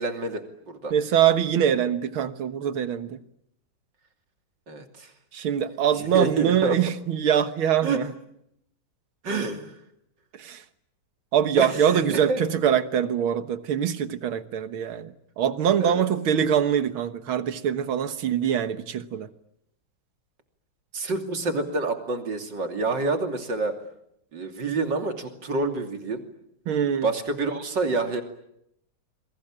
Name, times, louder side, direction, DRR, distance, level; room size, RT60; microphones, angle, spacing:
voice 1, 0.0-0.9 4.7-5.1 6.0-6.8 7.8-8.0 9.2-9.8 11.6-12.4 15.8-16.0 20.9-23.7 24.3-26.2 27.0-28.2, right 3 dB, 60° right, 5 dB, 3.5 m, -27 dB
voice 2, 0.9-3.2 5.3-8.1 10.3-10.6 11.3-19.3 26.7-27.1, right 9 dB, 90° right, 11 dB, 2.2 m, -24 dB
28.5 x 22.5 x 8.8 m, 0.77 s
omnidirectional pair, 2.2 m